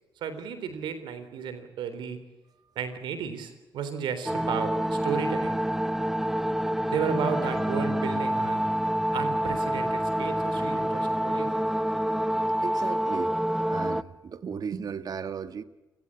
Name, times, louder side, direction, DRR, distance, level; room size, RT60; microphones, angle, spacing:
voice 1, 0.2-2.2 2.8-5.6 6.9-8.6 9.1-11.6, right 7 dB, 80° right, 3.7 m, -33 dB
sound 1, 4.3-14.0, equal, 5° right, 1.1 m, -27 dB
voice 2, 12.6-15.6, right 6 dB, 55° right, 1.6 m, -36 dB
29.0 x 16.5 x 8.8 m
cardioid pair, 70°, 8 cm